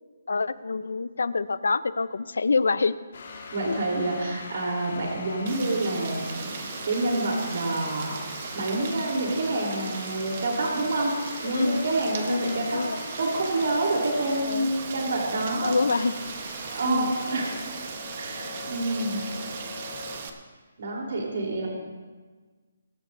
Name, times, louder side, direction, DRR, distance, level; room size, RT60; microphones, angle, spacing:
voice 1, 0.3-2.9 3.7-3.8 11.4-11.9 12.3-13.0 14.4-14.7 15.6-16.1 16.8-17.2, left 4 dB, 80° left, 16 dB, 0.6 m, -26 dB
sound 1, 3.1-20.2, left 4 dB, 55° left, 2.9 m, -42 dB
voice 2, 3.5-8.2 8.5-11.1 11.4-16.1 16.7-17.6 18.2-19.3 20.8-21.7, right 2 dB, 55° right, -1 dB, 3.6 m, -28 dB
Rain, 5.5-20.3, right 6 dB, 35° right, 1.1 m, -38 dB
23.5 x 13.0 x 2.7 m, 1.4 s
hypercardioid pair, 170°, 0 cm